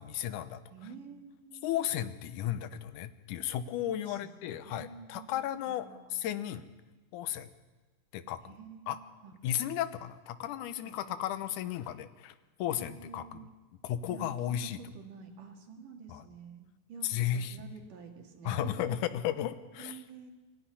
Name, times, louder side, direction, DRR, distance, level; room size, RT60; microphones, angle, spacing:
voice 1, 0.0-0.6 1.6-5.9 6.1-6.7 7.1-7.5 8.1-8.4 8.9-9.0 9.4-12.3 12.6-13.4 13.8-14.8 16.1-16.2 17.0-17.6 18.5-20.0, left 11 dB, 70° left, 11 dB, 2.1 m, -34 dB
voice 2, 0.7-1.9 3.9-4.4 4.6-6.2 8.4-9.3 10.8-11.1 12.7-13.5 14.1-16.6 16.9-18.9 19.8-20.3, right 5 dB, 65° right, 2 dB, 3.4 m, -49 dB
22.5 x 14.5 x 9.9 m, 1.2 s
omnidirectional pair, 4.3 m